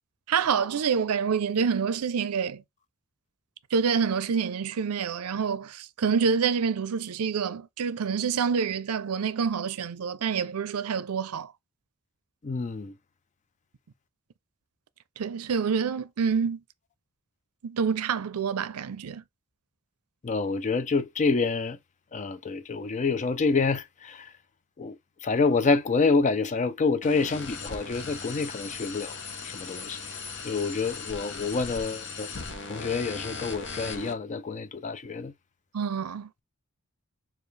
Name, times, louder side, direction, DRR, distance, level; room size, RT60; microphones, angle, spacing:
voice 1, 0.3-2.6 3.7-11.5 15.2-16.6 17.6-19.2 35.7-36.3, right 6 dB, 80° right, 0.5 m, -27 dB
voice 2, 12.4-12.9 20.2-21.8 22.1-24.3 24.8-25.0 25.2-29.1 29.4-30.0 30.4-32.3 32.7-35.3, left 4 dB, 35° left, 0.4 m, -27 dB
sound 1, 27.0-34.1, left 4 dB, 55° left, 0.9 m, -38 dB
6.7 x 2.4 x 3.2 m
head